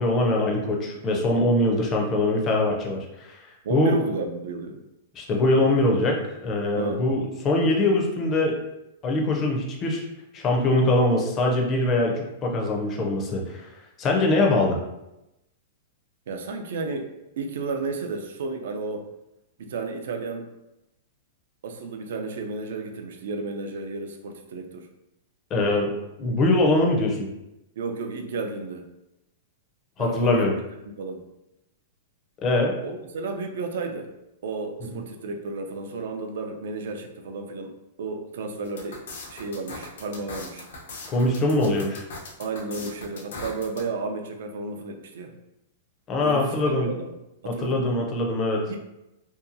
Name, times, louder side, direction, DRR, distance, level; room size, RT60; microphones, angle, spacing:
voice 1, 0.0-3.4 3.7-3.9 5.1-8.6 9.0-10.1 10.3-13.7 14.0-14.8 25.5-27.3 30.0-30.5 32.4-32.7 34.9-35.0 41.1-42.0 46.1-46.9 47.5-48.6, left 2 dB, 25° left, 0 dB, 0.5 m, -23 dB
voice 2, 3.6-4.8 6.7-7.0 16.3-17.1 17.4-19.1 19.6-20.5 21.6-24.9 27.8-28.9 30.0-30.5 31.0-31.2 32.8-34.1 34.4-39.0 39.3-40.7 42.4-45.3 46.2-47.1 47.4-47.9 48.7-48.8, right 3 dB, 70° right, 4 dB, 0.4 m, -32 dB
sound 1, 38.6-43.8, left 2 dB, 80° left, 0.7 m, -40 dB
2.7 x 2.3 x 2.5 m, 0.91 s
supercardioid pair, 155°, 0 cm